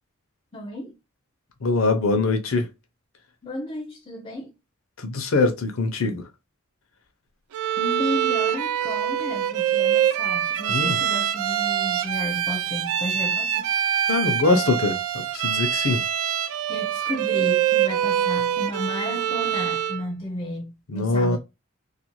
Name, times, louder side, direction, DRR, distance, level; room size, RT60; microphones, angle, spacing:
voice 1, 0.5-0.9 3.4-4.5 7.8-13.7 16.7-21.4, left 1 dB, 25° left, 0.4 m, -33 dB
voice 2, 1.6-2.7 5.0-6.2 10.7-11.0 14.1-16.0 20.9-21.4, left 3 dB, 75° left, 0.6 m, -23 dB
Bowed string instrument, 7.5-20.1, right 10 dB, 90° right, 0.3 m, -24 dB
2.5 x 2.3 x 2.9 m
head